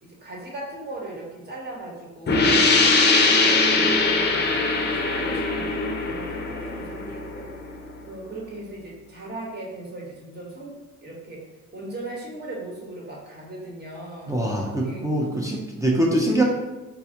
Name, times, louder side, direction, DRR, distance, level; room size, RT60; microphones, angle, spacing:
voice 1, 0.0-7.5 8.0-11.5 11.7-14.4 14.8-15.4, right 2 dB, 35° right, -3 dB, 1.2 m, -38 dB
sound 1, 2.3-7.7, left 3 dB, 35° left, 0.6 m, -21 dB
voice 2, 14.3-16.4, right 1 dB, 10° right, -2 dB, 0.5 m, -23 dB
4.3 x 2.2 x 2.8 m, 1.1 s
cardioid pair, 90°, 30 cm